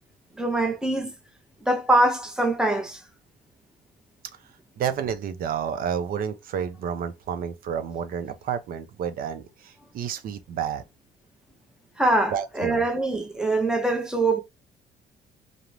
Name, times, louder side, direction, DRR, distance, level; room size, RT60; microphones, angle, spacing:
voice 1, 0.4-1.1 1.7-3.0 12.0-14.4, right 2 dB, 5° right, 0.6 m, -23 dB
voice 2, 4.8-10.8 12.3-12.8, right 8 dB, 60° right, 0.5 m, -30 dB
2.4 x 2.0 x 3.0 m
cardioid pair, 110°, 17 cm